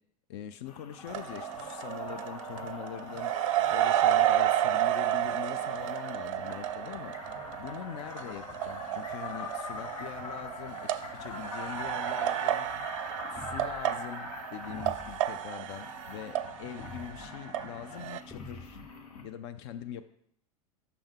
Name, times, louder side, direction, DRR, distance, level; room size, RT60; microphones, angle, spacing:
voice 1, 0.3-3.3 3.7-7.1 7.6-10.9 11.2-12.7 13.3-18.8 19.2-20.1, left 10 dB, 50° left, 11 dB, 0.4 m, -42 dB
sound 1, 0.7-19.2, left 3 dB, 75° left, 0.9 m, -44 dB
sound 2, 1.1-17.7 17.9-18.2, right 12 dB, 60° right, 0.4 m, -31 dB
sound 3, 13.4-13.9 14.7-15.3 16.8-17.3 18.3-19.0, left 1 dB, 10° left, 0.9 m, -47 dB
5.7 x 3.4 x 5.3 m, 0.73 s
figure-of-eight pair, 85°, 19 cm